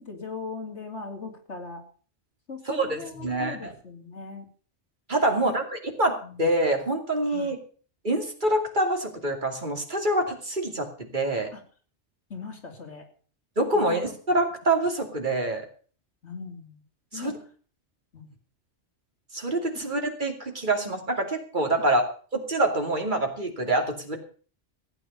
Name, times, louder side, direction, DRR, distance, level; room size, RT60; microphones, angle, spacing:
voice 1, 0.0-1.8 2.5-4.4 5.3-5.6 6.2-6.4 7.3-7.5 11.5-11.6 12.3-13.1 13.7-14.0 16.2-16.8 17.1-17.4 18.1-18.3, left 4 dB, 70° left, 2 dB, 3.3 m, -39 dB
voice 2, 2.7-3.7 5.1-7.6 8.0-10.9 11.1-11.5 13.6-15.7 17.1-17.4 19.3-22.0 22.3-24.2, right 1 dB, 40° right, 4 dB, 2.8 m, -26 dB
15.5 x 8.7 x 6.6 m, 0.42 s
omnidirectional pair, 1.2 m